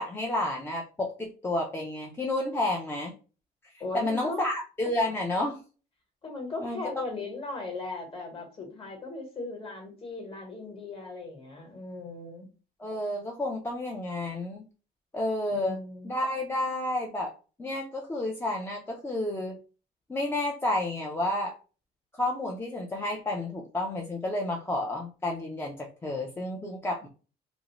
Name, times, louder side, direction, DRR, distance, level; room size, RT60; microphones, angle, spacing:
voice 1, 0.0-3.1 3.9-5.6 6.6-6.8 12.8-14.7 15.1-15.8 16.0-17.3 17.6-19.6 20.1-21.5 22.1-27.1, left 1 dB, 15° left, 0 dB, 0.4 m, -30 dB
voice 2, 3.8-4.4 6.2-12.5 15.5-16.1, left 3 dB, 35° left, 3 dB, 1.1 m, -38 dB
2.5 x 2.0 x 2.9 m, 0.35 s
cardioid pair, 110°, 17 cm